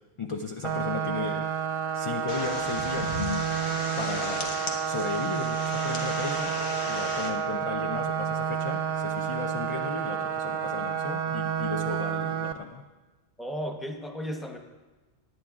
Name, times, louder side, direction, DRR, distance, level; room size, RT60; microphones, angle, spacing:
voice 1, 0.2-3.4 4.0-4.5 4.9-6.6 6.8-12.8, left 4 dB, 45° left, 4 dB, 0.4 m, -35 dB
sound 1, 0.6-12.5, right 8 dB, 60° right, 0.8 m, -30 dB
sound 2, 2.3-7.3, left 3 dB, 85° left, 1.5 m, -35 dB
voice 2, 13.4-14.6, equal, ahead, 3 dB, 0.7 m, -34 dB
19.0 x 9.2 x 2.4 m, 1.2 s
omnidirectional pair, 1.1 m